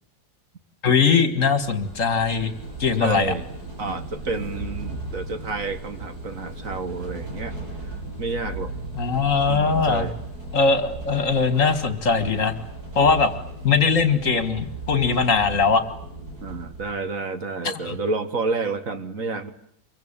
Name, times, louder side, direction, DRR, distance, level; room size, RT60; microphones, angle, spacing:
voice 1, 0.8-2.5 2.8-3.3 9.0-10.1 10.5-12.5 13.0-13.3 13.6-15.8 17.6-17.9, left 5 dB, 50° left, 11 dB, 2.3 m, -20 dB
sound 1, 1.6-16.9, right 2 dB, 70° right, 7.5 m, -36 dB
voice 2, 3.0-3.4 3.8-7.6 7.8-8.7 9.5-10.2 13.0-13.1 16.4-19.5, right 3 dB, 55° right, 10 dB, 2.1 m, -30 dB
25.5 x 23.0 x 8.9 m, 0.72 s
omnidirectional pair, 1.7 m